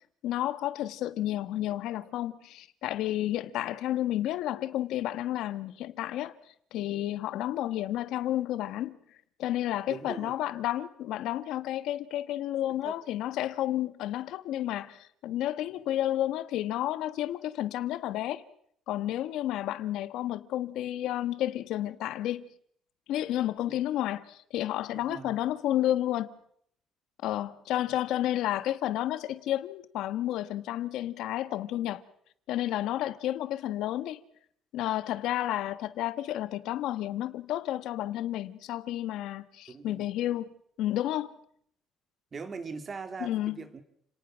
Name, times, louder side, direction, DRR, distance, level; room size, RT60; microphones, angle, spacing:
voice 1, 0.2-6.4 6.7-9.0 9.4-18.4 18.9-22.5 23.1-26.4 27.2-32.0 32.5-34.2 34.7-40.5 40.8-41.3 43.2-43.6, left 13 dB, 70° left, 1.4 m, -31 dB
voice 2, 9.9-10.4 12.8-13.0 23.7-23.8 25.1-25.3 39.7-40.1 42.3-43.8, right 4 dB, 25° right, 2.5 m, -40 dB
30.0 x 19.0 x 6.3 m
cardioid pair, 155°, 0 cm